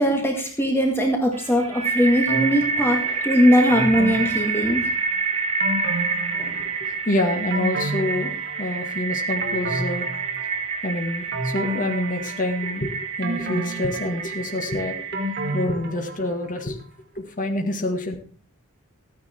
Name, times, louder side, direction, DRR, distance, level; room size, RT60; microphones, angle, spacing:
voice 1, 0.0-4.9, equal, 10° left, 1 dB, 1.9 m, -20 dB
sound 1, 1.3-15.6, right 5 dB, 30° right, 1.3 m, -28 dB
sound 2, 2.3-3.1 3.7-5.1 5.6-6.9 7.3-9.0 9.4-10.8 11.3-12.8 13.2-16.5 16.8-16.9, right 1 dB, 50° right, 2.2 m, -31 dB
voice 2, 6.3-8.3 8.6-10.1 10.8-15.0 15.5-16.8 17.2-18.1, left 1 dB, 35° left, 3 dB, 1.9 m, -27 dB
13.5 x 9.9 x 4.4 m, 0.40 s
head